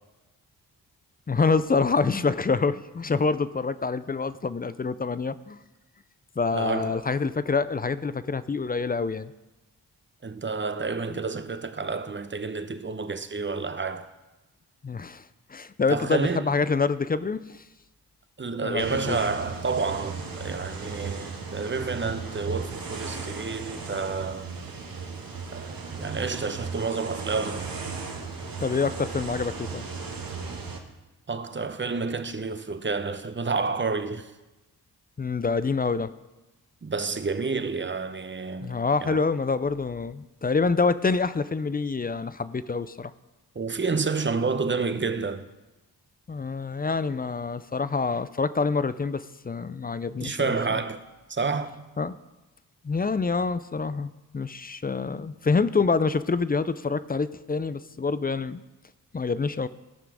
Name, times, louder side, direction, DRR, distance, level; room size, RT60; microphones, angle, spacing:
voice 1, 1.3-5.6 6.4-9.3 14.8-15.2 15.5-17.6 18.6-19.2 28.6-29.9 35.2-36.1 38.6-43.1 46.3-50.8 52.0-52.2 52.8-58.6 59.1-59.7, left 4 dB, 25° left, 0.4 m, -26 dB
voice 2, 6.5-7.1 10.2-14.1 15.9-16.5 18.4-24.5 25.5-27.7 31.3-34.3 36.8-39.2 43.5-45.5 50.2-51.0 51.3-51.9, right 4 dB, 30° right, 0.8 m, -29 dB
sound 1, 18.8-30.8, right 4 dB, 55° right, 1.5 m, -36 dB
16.5 x 5.9 x 4.8 m
cardioid pair, 60°, 41 cm